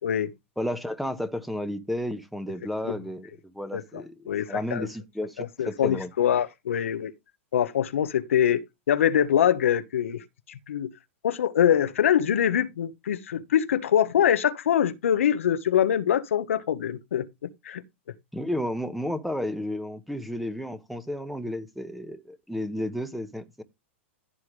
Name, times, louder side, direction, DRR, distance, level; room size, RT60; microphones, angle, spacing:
voice 1, 0.6-4.1 4.5-6.1 18.3-23.6, left 1 dB, ahead, 1.4 m, -32 dB
voice 2, 4.3-4.9 5.6-7.1 7.5-8.6 8.9-10.9 11.2-17.3 17.6-17.8, left 9 dB, 85° left, 1.2 m, -24 dB
15.0 x 5.8 x 3.3 m
hypercardioid pair, 125°, 7 cm